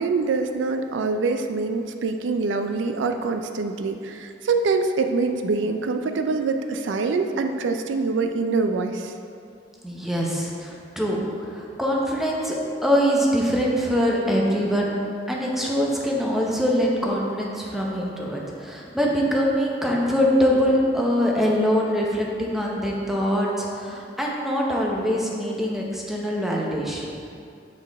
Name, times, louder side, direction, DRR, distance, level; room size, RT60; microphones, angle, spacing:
voice 1, 0.0-9.1, right 4 dB, 90° right, 7 dB, 0.4 m, -25 dB
voice 2, 9.8-15.0 15.3-27.1, equal, ahead, -3 dB, 0.7 m, -23 dB
7.5 x 4.3 x 3.5 m, 2.5 s
head